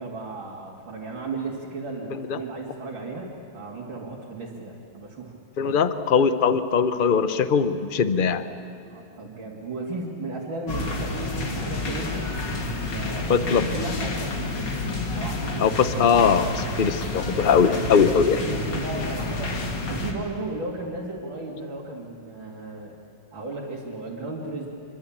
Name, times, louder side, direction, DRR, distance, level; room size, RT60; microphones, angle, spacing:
voice 1, 0.0-5.3 5.6-5.7 8.9-12.3 12.6-14.9 15.1-15.5 18.4-23.0 23.3-24.7, right 2 dB, 80° right, -4 dB, 3.5 m, -35 dB
voice 2, 5.6-8.5 13.3-13.7 15.6-18.4, left 6 dB, 40° left, 11 dB, 0.8 m, -21 dB
sound 1, 10.7-20.1, left 2 dB, 65° left, 3.0 m, -29 dB
26.0 x 24.0 x 8.8 m, 2.6 s
omnidirectional pair, 2.1 m